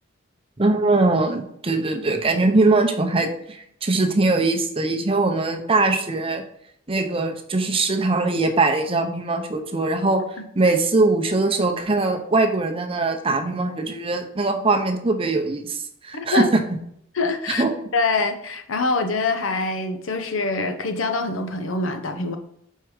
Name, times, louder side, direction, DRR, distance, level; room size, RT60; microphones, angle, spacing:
voice 1, 0.6-6.4 6.9-10.2 10.5-16.5 17.6-17.7, right 3 dB, 30° right, 5 dB, 0.7 m, -21 dB
voice 2, 16.1-16.4 17.1-17.6 17.9-22.4, left 3 dB, 80° left, 7 dB, 0.7 m, -24 dB
4.9 x 4.5 x 4.8 m, 0.70 s
head